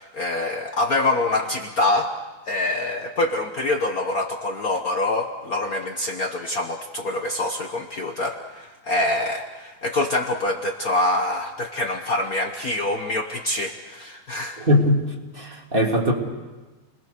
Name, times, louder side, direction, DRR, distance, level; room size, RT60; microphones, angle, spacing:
voice 1, 0.0-2.1 2.5-14.6, left 2 dB, 80° left, 4 dB, 0.8 m, -25 dB
voice 2, 14.6-15.0 15.3-16.1, left 1 dB, 20° right, 0 dB, 2.5 m, -20 dB
29.5 x 21.0 x 6.8 m, 1.2 s
omnidirectional pair, 3.4 m